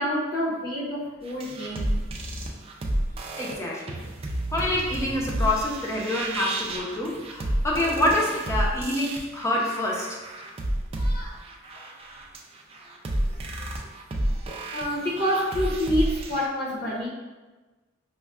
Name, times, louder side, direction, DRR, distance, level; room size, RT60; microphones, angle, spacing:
voice 1, 0.0-1.9 3.3-3.4 11.0-11.4 14.7-17.1, equal, 50° left, -4 dB, 0.9 m, -28 dB
sound 1, 1.3-16.5, right 1 dB, 30° right, 0.3 m, -31 dB
voice 2, 3.4-4.0 4.5-10.1 11.7-11.8, left 1 dB, 15° left, -3 dB, 0.6 m, -26 dB
5.2 x 2.2 x 2.3 m, 1.2 s
head